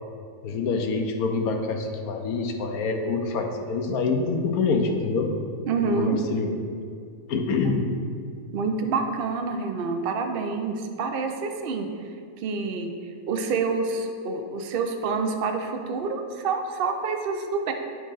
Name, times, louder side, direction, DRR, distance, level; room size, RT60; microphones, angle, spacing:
voice 1, 0.4-5.3 6.0-6.5 7.3-7.8, left 4 dB, 80° left, 4 dB, 1.1 m, -26 dB
voice 2, 5.7-6.2 8.5-11.9 12.4-12.9 13.3-17.7, right 4 dB, 65° right, 5 dB, 0.5 m, -27 dB
9.4 x 3.7 x 3.9 m, 2.3 s
omnidirectional pair, 1.5 m